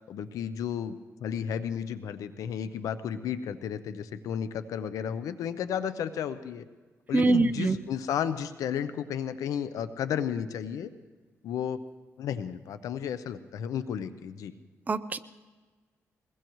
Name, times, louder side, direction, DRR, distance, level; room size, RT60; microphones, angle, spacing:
voice 1, 0.1-6.7 7.1-10.9 11.4-11.8 12.2-14.6, left 8 dB, 90° left, 12 dB, 0.7 m, -33 dB
voice 2, 7.1-7.8 14.9-15.2, right 3 dB, 30° right, 11 dB, 0.7 m, -24 dB
22.5 x 20.5 x 3.1 m, 1.4 s
cardioid pair, 90°, 6 cm